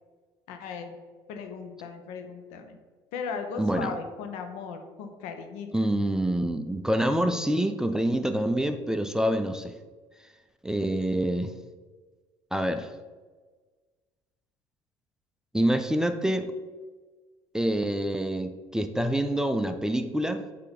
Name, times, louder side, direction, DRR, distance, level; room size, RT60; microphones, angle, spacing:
voice 1, 0.5-1.0 1.3-2.8 3.1-5.9, left 5 dB, 75° left, 6 dB, 0.9 m, -37 dB
voice 2, 3.6-4.0 5.7-9.8 10.6-11.5 12.5-12.9 15.5-16.5 17.5-20.4, right 1 dB, 5° right, 8 dB, 0.5 m, -26 dB
8.2 x 2.9 x 5.2 m, 1.4 s
hypercardioid pair, 70°, 12 cm